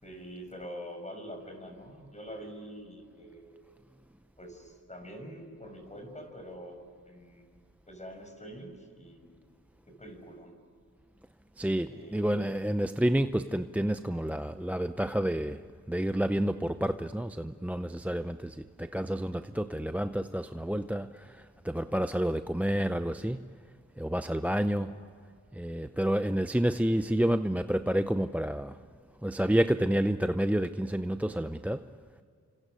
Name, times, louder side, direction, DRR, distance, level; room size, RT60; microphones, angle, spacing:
voice 1, 0.0-3.6 4.4-7.5 7.9-9.5 9.9-10.6 11.9-12.5 24.9-25.1, equal, 25° left, 6.4 m, -45 dB
voice 2, 11.6-23.5 24.0-25.0 25.5-28.8 29.2-31.9, right 1 dB, 5° right, 0.6 m, -29 dB
30.0 x 26.0 x 6.4 m
cardioid pair, 85°, 31 cm